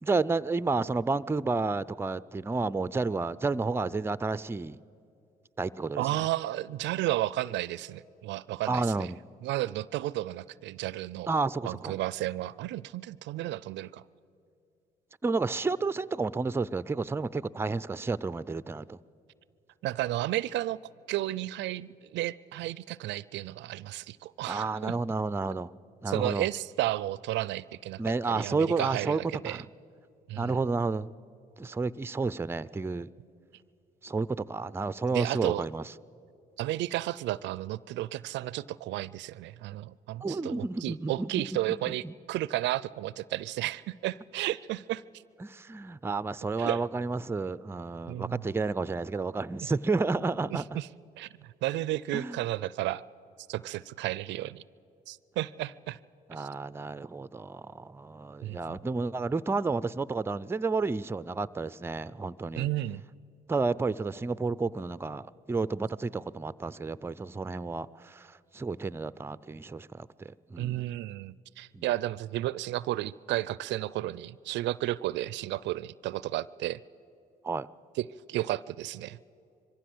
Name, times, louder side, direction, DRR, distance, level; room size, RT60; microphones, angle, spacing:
voice 1, 0.0-4.8 5.6-6.3 8.7-9.2 11.3-12.0 15.2-19.0 24.5-25.7 26.0-26.5 28.0-29.2 29.4-29.7 30.4-31.1 31.6-33.1 34.0-35.8 40.2-41.6 41.9-42.1 45.4-50.6 52.1-52.4 56.3-62.7 63.5-68.3 68.5-70.9 71.7-71.9 77.4-77.7, right 3 dB, 15° right, 17 dB, 0.4 m, -31 dB
voice 2, 6.0-9.1 9.4-11.3 11.6-14.0 19.8-20.8 21.1-25.0 26.1-29.6 30.3-30.6 35.1-35.7 36.6-45.0 46.6-46.8 48.1-48.4 50.5-50.9 51.2-53.0 53.5-54.6 55.1-56.0 56.3-56.5 58.4-58.8 62.6-63.0 70.6-76.8 78.0-79.2, right 15 dB, 75° right, 21 dB, 0.4 m, -33 dB
22.5 x 15.0 x 7.9 m, 2.5 s
supercardioid pair, 65°, 19 cm